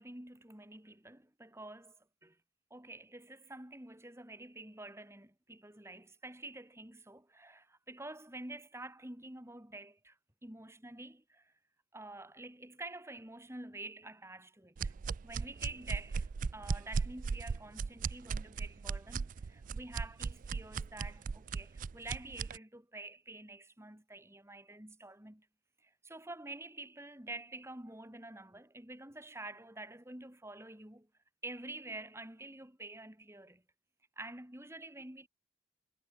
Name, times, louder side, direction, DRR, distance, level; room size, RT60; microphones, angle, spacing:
voice 1, 0.0-2.4 2.7-11.5 11.9-14.9 15.2-25.5 25.8-31.1 31.4-33.6 34.2-35.3, right 2 dB, 15° right, 2.5 m, -48 dB
sound 1, 14.8-22.6, right 5 dB, 45° right, 0.3 m, -37 dB
head